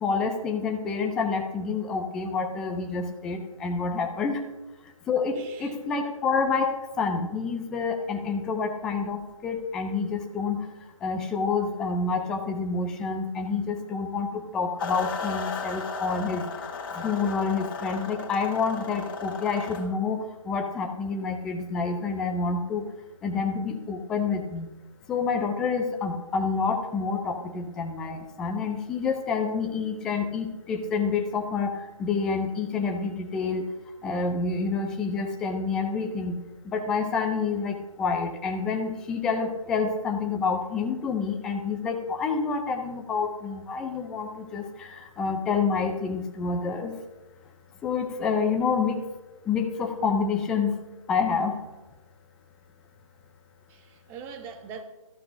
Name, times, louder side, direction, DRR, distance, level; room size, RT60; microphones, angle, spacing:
voice 1, 0.0-4.4 5.1-10.6 11.0-16.4 17.0-22.8 23.2-24.7 25.1-31.7 32.0-33.7 34.0-36.4 36.6-46.9 47.8-49.0 49.5-50.8 51.1-51.5, left 5 dB, 5° left, 0.4 m, -28 dB
voice 2, 5.3-6.0 53.7-54.8, right 6 dB, 10° right, 0.9 m, -42 dB
sound 1, 14.8-19.8, left 4 dB, 40° left, 2.2 m, -35 dB
16.5 x 14.0 x 2.6 m
figure-of-eight pair, 150°, 18 cm